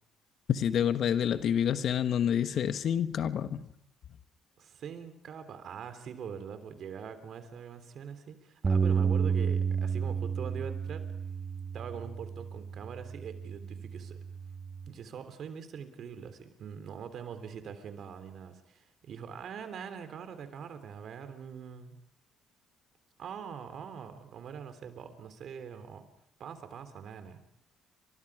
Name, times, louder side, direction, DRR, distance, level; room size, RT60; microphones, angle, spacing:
voice 1, 0.5-3.6, left 9 dB, 65° left, 1.3 m, -28 dB
voice 2, 4.6-11.0 11.7-14.2 14.9-21.9 23.2-26.1 26.4-27.4, right 7 dB, 65° right, 3.3 m, -43 dB
Bass guitar, 8.6-14.9, right 6 dB, 35° right, 1.3 m, -31 dB
29.5 x 25.0 x 4.9 m
supercardioid pair, 60°, 0 cm